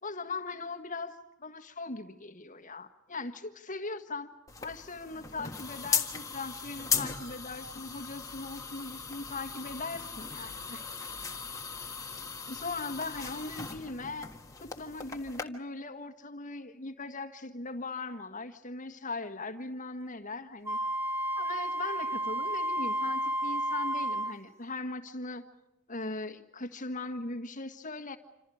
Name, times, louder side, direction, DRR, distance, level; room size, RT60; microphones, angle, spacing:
voice 1, 0.0-4.3 4.6-10.9 12.4-14.3 14.6-20.8 21.3-25.4 25.9-28.2, left 3 dB, 35° left, 7 dB, 1.6 m, -39 dB
sound 1, 4.5-15.4, left 5 dB, 15° left, 1.6 m, -37 dB
Wind instrument woodwind instrument, 20.7-24.4, right 1 dB, 10° right, 1.1 m, -31 dB
27.5 x 27.0 x 5.0 m, 0.94 s
head